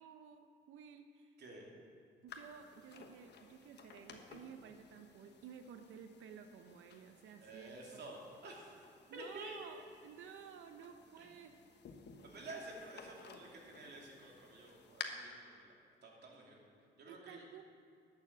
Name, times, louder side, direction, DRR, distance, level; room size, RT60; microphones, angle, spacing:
voice 1, 0.0-1.4 2.2-8.0 9.1-11.5 17.1-17.6, right 7 dB, 85° right, 7 dB, 0.8 m, -54 dB
voice 2, 1.4-1.8 7.4-8.7 9.1-9.6 11.2-11.3 12.2-15.7 16.0-16.7 17.0-17.5, right 2 dB, 55° right, -2 dB, 2.8 m, -51 dB
sound 1, 2.3-15.0, left 7 dB, 60° left, 1.2 m, -56 dB
11.0 x 7.1 x 7.6 m, 2.3 s
cardioid pair, 90°, 20 cm